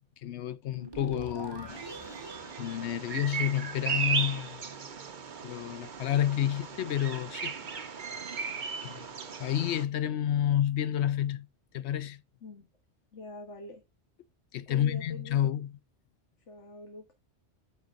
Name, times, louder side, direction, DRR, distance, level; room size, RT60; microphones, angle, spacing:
voice 1, 0.2-1.7 2.6-4.6 5.4-7.5 8.8-9.1 9.4-11.5 11.7-12.2 14.5-15.8, left 11 dB, 75° left, 0.8 m, -30 dB
sound 1, 0.7-4.0, right 3 dB, 20° right, 1.8 m, -44 dB
Bird vocalization bird call bird song, 1.7-9.8, right 6 dB, 45° right, 0.9 m, -36 dB
voice 2, 13.1-13.8 14.7-15.4 16.5-17.0, left 2 dB, 90° left, 1.6 m, -45 dB
13.0 x 4.5 x 2.5 m
omnidirectional pair, 1.2 m